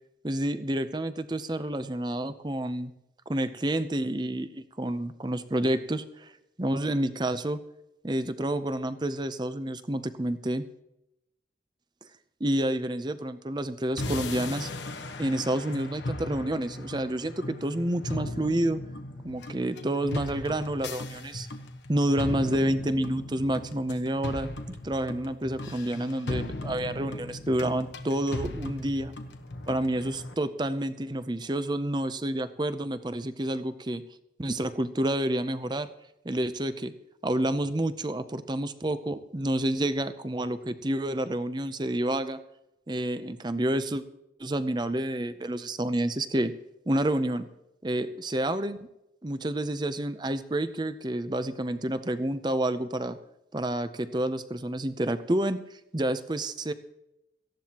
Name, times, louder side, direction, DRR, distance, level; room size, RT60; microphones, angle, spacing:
voice 1, 0.2-2.9 3.3-6.3 6.6-7.6 8.0-10.6 12.4-14.7 15.2-18.8 19.2-21.5 21.9-29.1 29.7-34.0 34.4-35.9 36.2-36.9 37.2-42.4 42.9-44.0 44.4-46.5 46.9-47.5 47.8-48.8 49.2-53.2 53.5-56.7, right 1 dB, 25° right, 12 dB, 0.6 m, -29 dB
sound 1, 14.0-30.3, left 2 dB, 85° left, 1.2 m, -37 dB
18.0 x 14.0 x 3.0 m, 0.88 s
head